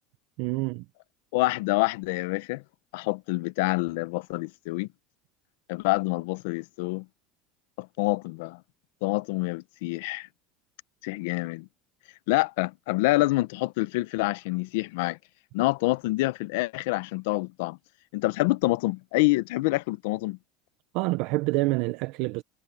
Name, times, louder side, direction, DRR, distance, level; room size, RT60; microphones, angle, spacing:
voice 1, 0.4-0.8 20.9-22.4, right 22 dB, 70° right, 0.7 m, -27 dB
voice 2, 1.3-2.6 2.9-4.9 5.7-7.1 7.8-8.6 9.0-10.3 11.0-11.7 12.3-15.2 15.5-17.8 18.1-20.4, left 21 dB, 80° left, 0.8 m, -27 dB
supercardioid pair, 115°, 0 cm